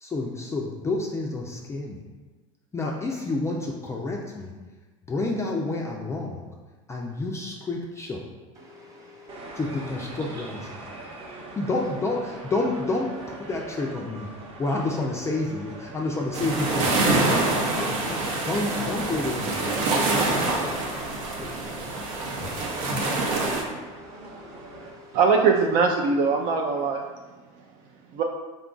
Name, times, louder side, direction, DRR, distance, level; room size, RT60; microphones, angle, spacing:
voice 1, 0.0-2.0 2.7-4.5 5.1-6.4 6.9-8.2 9.6-10.8 11.6-14.3 14.6-19.9 21.4-21.5 22.4-22.5, left 2 dB, 15° left, -1 dB, 0.3 m, -29 dB
voice 2, 8.5-9.8 10.3-10.5 20.7-25.2, left 2 dB, 20° right, -3 dB, 1.0 m, -49 dB
sound 1, 9.3-24.9, right 2 dB, 35° right, 0.8 m, -42 dB
sound 2, 16.3-23.6, right 2 dB, 85° right, 0.7 m, -26 dB
voice 3, 25.1-27.0 28.1-28.2, right 5 dB, 55° right, 2 dB, 0.4 m, -21 dB
3.7 x 2.3 x 3.7 m, 1.3 s
supercardioid pair, 115°, 17 cm